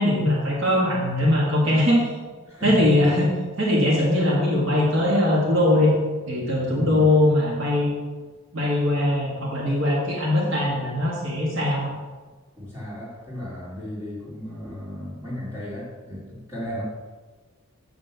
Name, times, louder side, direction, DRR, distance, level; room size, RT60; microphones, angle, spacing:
voice 1, 0.0-2.1 2.6-3.3 3.6-5.9 6.3-7.9 8.5-11.9, left 1 dB, 60° right, -5 dB, 2.0 m, -21 dB
voice 2, 2.5-2.9 6.7-7.1 12.5-16.8, left 1 dB, 10° right, -8 dB, 3.1 m, -34 dB
9.5 x 3.9 x 7.1 m, 1.3 s
head